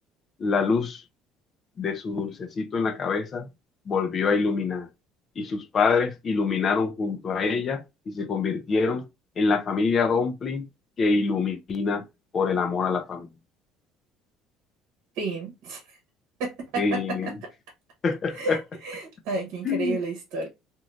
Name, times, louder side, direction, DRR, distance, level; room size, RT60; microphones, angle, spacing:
voice 1, 0.4-1.0 1.8-3.5 3.9-4.9 5.4-9.0 9.4-10.6 11.0-12.0 12.3-13.3 16.8-17.3 18.0-18.6 19.6-20.0, left 4 dB, 45° left, 0.7 m, -25 dB
voice 2, 15.1-16.0 16.4-17.5 18.3-20.5, right 3 dB, 75° right, 0.9 m, -32 dB
3.0 x 2.7 x 2.5 m
supercardioid pair, 85°, 0 cm